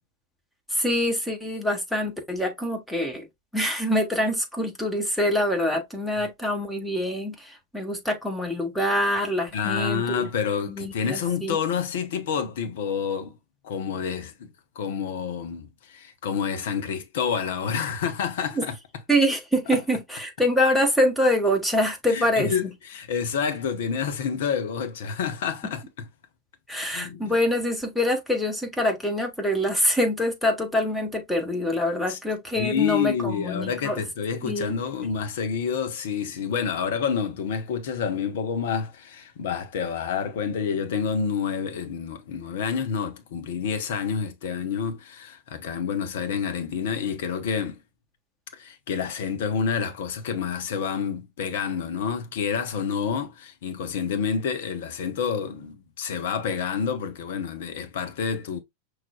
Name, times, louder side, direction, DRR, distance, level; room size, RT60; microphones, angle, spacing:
voice 1, 0.7-3.3 3.5-10.3 10.7-11.6 18.6-18.7 19.1-22.5 26.7-34.0 34.4-34.8, equal, 5° left, 1.4 m, -25 dB
voice 2, 9.5-13.4 13.6-14.5 14.7-18.8 19.7-19.8 22.1-26.1 26.9-27.3 32.1-32.2 32.6-47.8 48.5-58.6, left 6 dB, 55° left, 0.8 m, -28 dB
5.9 x 3.2 x 2.3 m
figure-of-eight pair, 90°, 0 cm